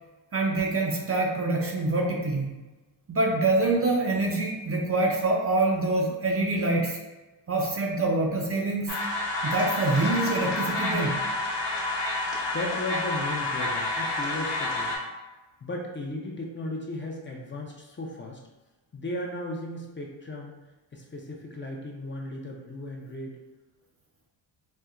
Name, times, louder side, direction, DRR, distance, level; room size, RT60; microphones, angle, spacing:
voice 1, 0.3-2.5 3.1-7.0 7.5-9.0 9.4-11.2, right 2 dB, 35° right, 0 dB, 0.5 m, -25 dB
sound 1, 8.9-15.0, left 2 dB, 75° left, 0.9 m, -29 dB
voice 2, 12.5-14.9 15.6-18.4 18.9-20.5 20.9-23.4, left 2 dB, 30° left, -1 dB, 0.5 m, -35 dB
4.2 x 2.1 x 2.4 m, 1.1 s
cardioid pair, 95°, 42 cm